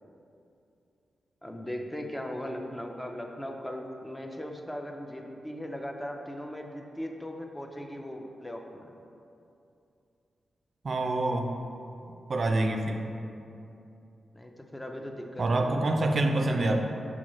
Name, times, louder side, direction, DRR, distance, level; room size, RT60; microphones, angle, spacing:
voice 1, 1.4-8.9 14.3-15.8, equal, 15° left, 2 dB, 0.5 m, -38 dB
voice 2, 10.8-11.6 12.3-13.0 15.4-16.8, right 2 dB, 60° right, 3 dB, 0.3 m, -26 dB
5.7 x 2.3 x 3.0 m, 2.7 s
supercardioid pair, 45°, 0 cm